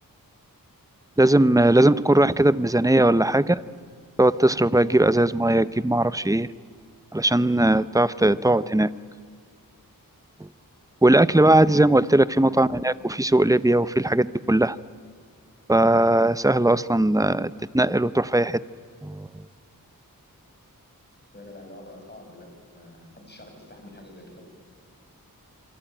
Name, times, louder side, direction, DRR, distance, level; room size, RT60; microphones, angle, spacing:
voice 1, 1.2-3.5 4.2-6.5 7.1-8.9 11.0-14.8 15.7-18.6 19.0-19.3, right 1 dB, 10° right, 16 dB, 0.7 m, -19 dB
voice 2, 21.3-24.4, left 1 dB, 30° left, 2 dB, 7.1 m, -46 dB
27.5 x 23.5 x 9.1 m, 2.1 s
wide cardioid pair, 50°, 35 cm